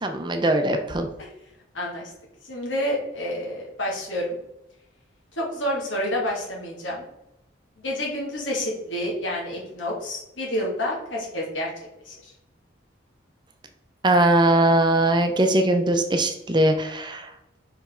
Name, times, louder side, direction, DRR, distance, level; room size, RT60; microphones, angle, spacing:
voice 1, 0.0-1.1 14.0-17.3, right 1 dB, 25° right, 6 dB, 0.7 m, -20 dB
voice 2, 1.7-2.1 2.4-4.4 5.4-7.1 7.8-11.7 12.0-12.3, left 1 dB, 80° left, -3 dB, 2.4 m, -29 dB
5.4 x 5.2 x 3.8 m, 0.87 s
head